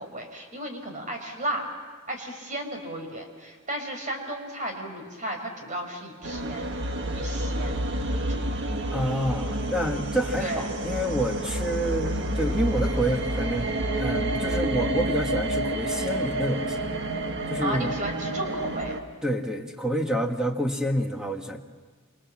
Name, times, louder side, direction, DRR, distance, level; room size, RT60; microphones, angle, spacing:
voice 1, 0.0-1.7 2.1-6.8 7.1-8.4 10.4-10.7 17.6-18.9, right 1 dB, 35° right, 4 dB, 4.9 m, -34 dB
sound 1, 6.2-19.0, right 1 dB, 55° right, 1.5 m, -29 dB
voice 2, 8.9-16.8 17.5-17.9 19.2-21.6, equal, 5° right, 3 dB, 1.6 m, -28 dB
27.5 x 27.0 x 7.5 m, 1.5 s
head